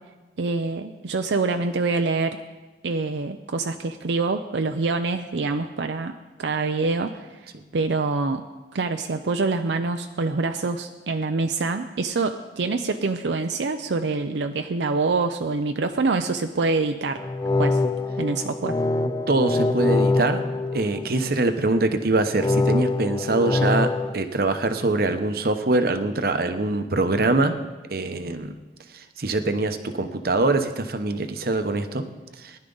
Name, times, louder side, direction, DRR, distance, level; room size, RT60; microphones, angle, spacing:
voice 1, 0.4-2.4 2.8-6.1 6.4-8.4 8.7-17.2 17.6-17.8 18.2-18.8, right 3 dB, 80° right, 7 dB, 0.6 m, -25 dB
sound 1, 17.2-21.5 22.4-24.1, left 2 dB, 20° left, 0.3 m, -24 dB
voice 2, 19.3-20.4 20.7-27.5 27.9-28.5 29.2-32.0 32.4-32.6, right 2 dB, 55° right, 8 dB, 0.9 m, -23 dB
19.0 x 11.0 x 4.0 m, 1.2 s
head